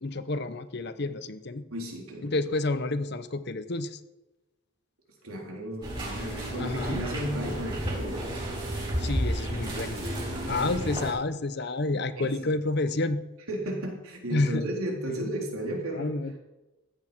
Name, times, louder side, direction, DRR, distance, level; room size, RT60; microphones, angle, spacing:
voice 1, 0.0-1.6 2.2-4.0 6.2-6.3 6.5-7.0 9.0-10.1 10.5-13.2 14.3-14.7 15.9-16.4, left 2 dB, 50° left, 12 dB, 0.7 m, -29 dB
voice 2, 1.7-2.4 5.2-8.5 10.5-10.7 12.2-12.3 13.5-16.2, right 1 dB, 85° right, 0 dB, 3.6 m, -34 dB
sound 1, 5.8-11.1, right 1 dB, 20° right, 4.1 m, -32 dB
14.5 x 8.7 x 6.1 m, 1.0 s
head